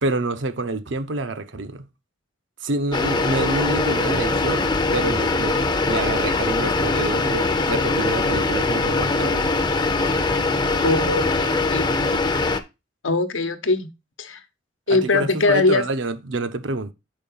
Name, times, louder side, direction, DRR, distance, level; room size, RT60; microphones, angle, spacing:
voice 1, 0.0-1.8 2.6-9.4 14.9-16.9, right 2 dB, 70° right, 0.7 m, -27 dB
sound 1, 2.9-12.6, left 3 dB, 20° left, 0.5 m, -22 dB
voice 2, 10.8-11.9 13.0-13.9 14.2-14.4 14.9-15.8, left 3 dB, 90° left, 0.9 m, -21 dB
5.3 x 4.6 x 5.4 m
head